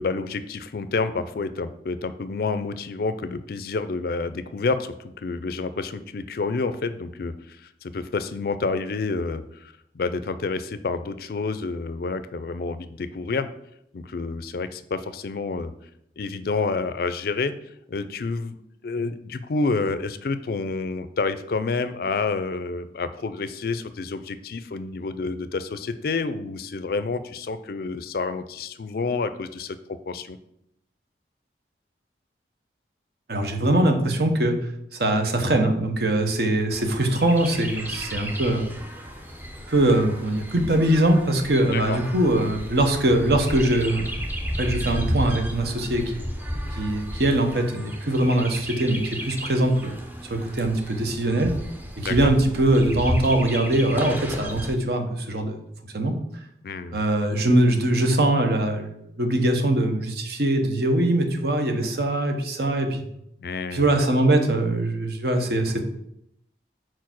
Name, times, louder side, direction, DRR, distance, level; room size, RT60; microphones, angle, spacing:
voice 1, 0.0-13.5 13.9-15.7 16.2-17.5 17.9-18.6 18.8-30.4 41.7-42.0 52.0-52.3 56.6-57.0 63.4-63.9, left 4 dB, 55° left, 12 dB, 0.4 m, -29 dB
voice 2, 33.3-34.6 34.9-38.7 39.7-44.1 44.6-46.1 46.7-49.9 50.3-51.5 52.0-55.6 55.9-56.1 56.9-58.9 59.2-63.0 63.7-65.8, right 1 dB, 60° right, 5 dB, 0.9 m, -22 dB
Chirp tweet, 36.7-54.7, equal, 10° right, 0.6 m, -33 dB
4.7 x 4.5 x 6.0 m, 0.77 s
head